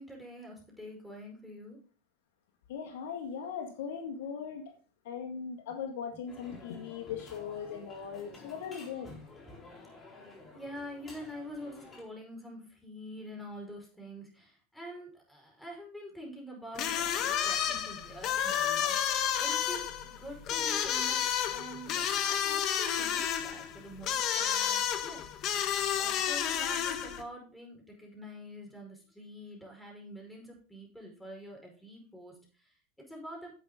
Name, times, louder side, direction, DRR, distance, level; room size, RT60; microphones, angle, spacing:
voice 1, 0.0-1.8 5.7-5.8 9.9-10.2 10.5-25.7 26.0-32.8 33.1-33.5, equal, 5° left, 0 dB, 4.8 m, -46 dB
voice 2, 2.7-4.7 5.1-9.1, left 7 dB, 75° left, 4 dB, 1.9 m, -39 dB
sound 1, 6.3-12.0, left 2 dB, 25° left, 4.1 m, -51 dB
sound 2, 16.8-27.2, left 9 dB, 45° left, 1.4 m, -31 dB
10.0 x 8.1 x 3.7 m, 0.39 s
hypercardioid pair, 115°, 0 cm